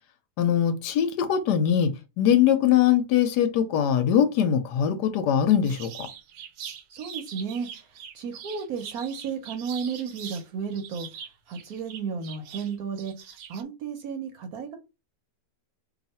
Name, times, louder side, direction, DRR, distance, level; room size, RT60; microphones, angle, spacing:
voice 1, 0.4-6.1, left 9 dB, 75° left, 1.1 m, -22 dB
sound 1, 5.6-10.4 10.7-13.6, right 8 dB, 85° right, 1.3 m, -42 dB
voice 2, 6.9-11.1 11.5-13.1 13.5-14.8, right 6 dB, 65° right, 1.0 m, -33 dB
2.8 x 2.4 x 4.0 m
omnidirectional pair, 1.9 m